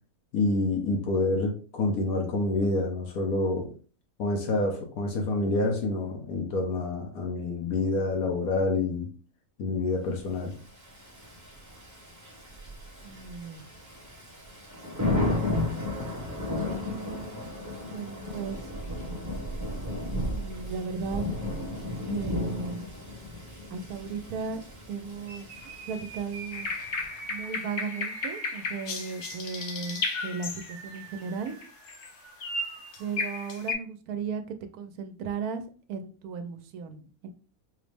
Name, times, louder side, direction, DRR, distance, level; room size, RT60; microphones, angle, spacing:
voice 1, 0.3-3.7 4.2-9.1 9.6-10.5, left 2 dB, 85° left, 1 dB, 1.3 m, -27 dB
Thunder / Rain, 10.6-27.2, left 1 dB, 15° right, 0.8 m, -34 dB
voice 2, 13.0-13.6 16.5-18.7 20.3-21.2 22.1-23.0 23.7-24.6 24.9-26.7 27.3-31.6 33.0-35.6 35.9-37.3, right 5 dB, 85° right, 8 dB, 1.1 m, -36 dB
sound 1, 25.2-33.2, right 4 dB, 65° right, 1.0 m, -46 dB
sound 2, 26.5-31.0 31.5-32.1 32.4-33.7, left 3 dB, 60° left, 0.8 m, -34 dB
5.2 x 2.0 x 3.3 m, 0.39 s
omnidirectional pair, 1.5 m